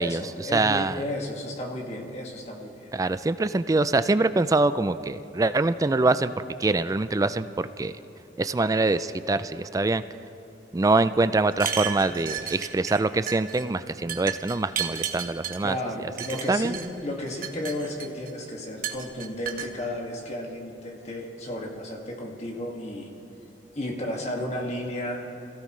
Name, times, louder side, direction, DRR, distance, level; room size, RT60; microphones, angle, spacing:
voice 1, 0.0-2.9 15.6-23.1 23.7-25.3, left 1 dB, 40° left, 0 dB, 2.0 m, -33 dB
voice 2, 0.5-1.0 2.9-6.3 6.6-7.5 7.8-7.9 8.4-10.0 10.7-15.7 16.5-16.7, right 3 dB, 20° right, 13 dB, 0.3 m, -24 dB
sound 1, 11.5-13.0 13.3-13.6 14.1-15.6 16.2-16.9 17.3-18.3 18.8-19.7, right 8 dB, 50° right, 1.3 m, -32 dB
26.0 x 16.5 x 3.2 m, 2.8 s
head